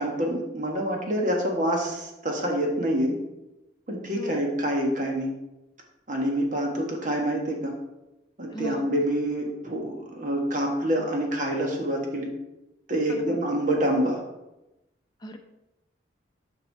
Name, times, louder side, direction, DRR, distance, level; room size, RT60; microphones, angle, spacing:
voice 1, 0.0-3.1 3.9-5.3 6.1-7.7 8.4-12.3 12.9-14.2, right 1 dB, 40° right, 0 dB, 1.4 m, -26 dB
voice 2, 4.1-4.5 8.5-8.8 13.1-13.4 15.2-15.4, equal, 25° left, 4 dB, 0.7 m, -36 dB
6.8 x 5.4 x 4.6 m, 0.95 s
head